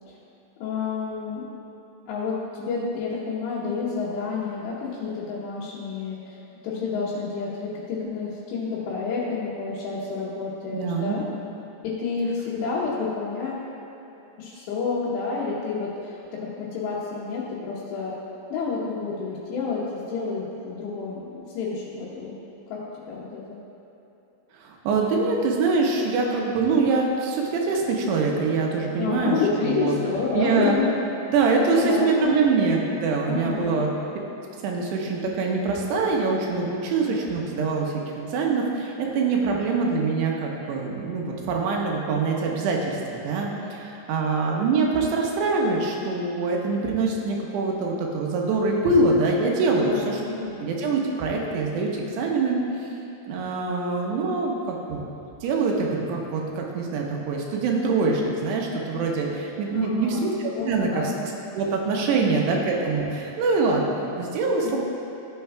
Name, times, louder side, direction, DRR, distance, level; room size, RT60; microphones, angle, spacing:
voice 1, 0.6-1.4 2.1-11.2 11.8-13.7 14.4-18.1 18.5-21.2 21.5-22.4 22.7-22.8 23.1-23.6 29.0-30.9 31.7-32.5 33.3-33.8 49.8-50.6 59.7-60.3 60.5-61.1 62.2-62.6 64.6-64.8, left 4 dB, 80° left, -9 dB, 3.3 m, -29 dB
voice 2, 10.7-11.2 24.6-29.4 29.6-30.0 30.3-30.8 31.3-33.9 34.6-43.0 43.2-50.2 50.6-51.9 52.2-52.6 53.3-55.0 55.4-60.9 61.2-64.8, right 4 dB, 80° right, -1 dB, 3.0 m, -24 dB
15.0 x 7.7 x 2.3 m, 3.0 s
omnidirectional pair, 5.0 m